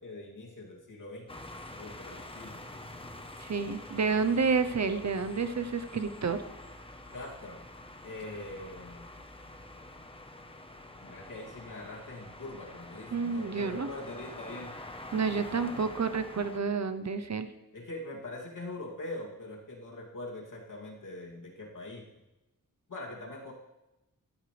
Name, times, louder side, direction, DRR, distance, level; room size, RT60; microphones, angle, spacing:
voice 1, 0.0-1.4 1.7-2.6 7.1-7.7 8.0-9.1 11.0-14.7 15.3-15.8 17.7-22.2 22.9-23.5, left 2 dB, 65° left, -1 dB, 2.8 m, -43 dB
sound 1, 1.3-16.6, left 1 dB, 15° left, 1.1 m, -46 dB
voice 2, 3.4-6.4 13.1-13.9 15.1-17.5, right 5 dB, 55° right, 10 dB, 0.9 m, -29 dB
17.0 x 12.5 x 3.4 m, 0.96 s
wide cardioid pair, 140°, 33 cm